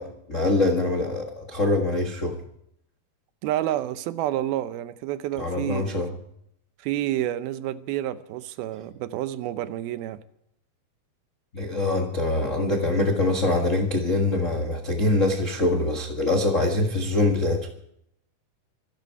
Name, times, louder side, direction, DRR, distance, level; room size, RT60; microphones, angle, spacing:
voice 1, 0.0-2.4 5.4-6.1 11.5-17.7, left 2 dB, 55° left, 0.8 m, -24 dB
voice 2, 3.4-6.0 6.8-10.2, right 13 dB, 80° right, 2.6 m, -29 dB
25.5 x 12.0 x 4.6 m
omnidirectional pair, 4.4 m